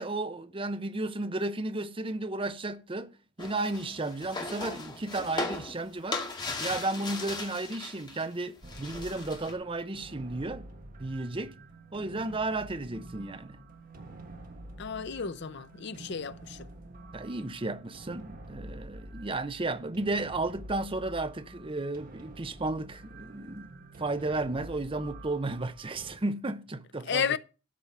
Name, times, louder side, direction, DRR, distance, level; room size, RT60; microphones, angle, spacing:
voice 1, 0.0-6.2 6.6-10.7 11.0-11.6 11.9-13.6 17.1-23.7 24.0-27.4, right 2 dB, 25° right, 0.7 m, -33 dB
sound 1, 3.4-8.2 8.5-9.5, left 3 dB, 20° left, 1.9 m, -37 dB
sound 2, 8.6-26.2, right 1 dB, 45° right, 1.3 m, -48 dB
voice 2, 14.8-16.7 27.1-27.4, left 6 dB, 60° left, 0.6 m, -32 dB
13.0 x 5.0 x 6.7 m
head